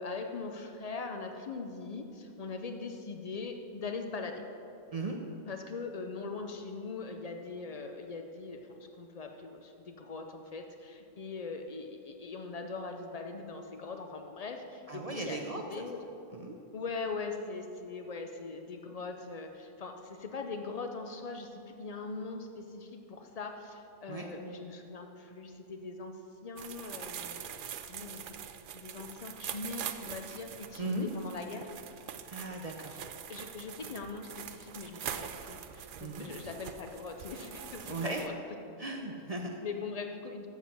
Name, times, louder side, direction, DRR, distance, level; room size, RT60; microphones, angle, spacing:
voice 1, 0.0-4.4 5.5-16.0 16.7-28.4 28.7-31.7 33.3-38.3 39.6-40.5, left 4 dB, 70° left, 5 dB, 0.3 m, -41 dB
voice 2, 14.9-15.6 16.3-16.6 24.1-24.3 30.8-31.1 32.3-33.0 36.0-36.3 37.8-38.2 38.8-39.5, right 2 dB, 40° right, 2 dB, 0.6 m, -37 dB
sound 1, 26.6-38.3, right 8 dB, 90° right, 0.4 m, -43 dB
7.4 x 7.3 x 6.9 m, 2.7 s
omnidirectional pair, 1.4 m